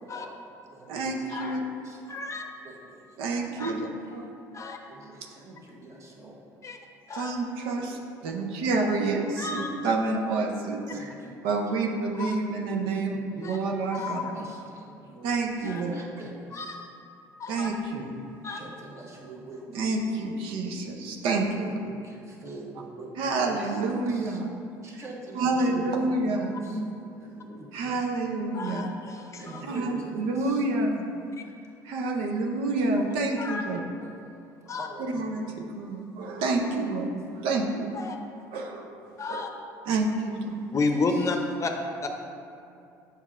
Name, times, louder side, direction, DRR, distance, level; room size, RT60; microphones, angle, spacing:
voice 1, 0.0-3.2 3.8-6.4 8.4-8.5 10.9-11.5 12.8-15.3 15.6-17.0 18.5-20.1 21.4-24.4 24.8-28.1 29.4-30.6 31.4-32.0 33.7-35.7 37.3-37.5 37.9-38.0 40.9-41.4, right 2 dB, 35° right, -2 dB, 1.1 m, -45 dB
voice 2, 0.9-1.6 3.2-4.3 7.1-8.0 8.2-10.8 11.4-14.5 15.2-15.9 17.5-18.1 19.7-21.7 23.2-24.5 25.4-26.8 27.3-27.4 27.7-28.8 29.7-31.1 31.8-33.8 35.1-37.9 38.5-38.9 39.3-39.5 39.9-40.6, right 3 dB, 75° right, 2 dB, 0.6 m, -28 dB
voice 3, 2.1-2.4 3.6-3.7 4.5-4.8 6.6-6.8 7.1-7.3 9.4-9.7 12.2-12.3 13.4-13.6 14.0-14.3 15.7-15.8 16.5-16.7 17.4-17.7 18.4-18.6 28.5-29.6 33.4-33.7 34.7-34.9 37.9-38.2 39.2-39.5 40.7-41.7 42.0-42.1, left 3 dB, 35° left, 3 dB, 0.6 m, -31 dB
7.0 x 5.5 x 2.4 m, 2.5 s
supercardioid pair, 70°, 9 cm